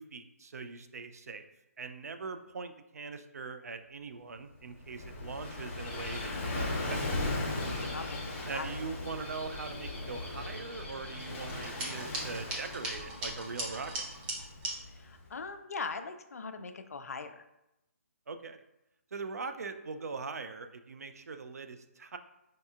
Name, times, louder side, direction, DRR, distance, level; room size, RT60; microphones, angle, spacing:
voice 1, 0.0-1.5 1.8-7.0 8.4-14.1 18.3-18.6 19.1-22.2, right 4 dB, 80° right, 9 dB, 0.4 m, -41 dB
Gull seagull / Waves surf, 4.6-15.2, left 2 dB, 20° left, 1.0 m, -38 dB
voice 2, 8.5-8.8 14.9-17.4, left 4 dB, 75° left, 8 dB, 0.4 m, -40 dB
sound 1, 11.5-14.7, right 1 dB, 15° right, 0.6 m, -38 dB
5.2 x 2.8 x 2.4 m, 0.89 s
hypercardioid pair, 155°, 8 cm